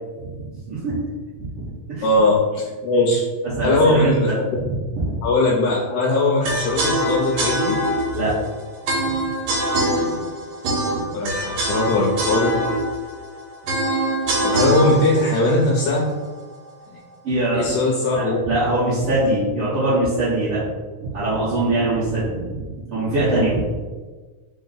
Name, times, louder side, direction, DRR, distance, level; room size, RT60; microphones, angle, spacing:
voice 1, 0.2-1.0 1.4-2.0 3.4-4.7 5.0-5.1 8.1-8.3 9.0-9.1 17.2-17.7 18.1-20.6 21.1-23.8, right 2 dB, 60° right, -12 dB, 1.6 m, -23 dB
voice 2, 2.0-3.2 3.6-4.3 5.2-7.8 11.1-12.6 14.4-16.0 17.5-18.4, left 2 dB, 80° left, -4 dB, 1.8 m, -19 dB
sound 1, 6.4-16.5, right 1 dB, 85° right, 2.3 m, -24 dB
4.9 x 2.0 x 3.8 m, 1.3 s
omnidirectional pair, 3.5 m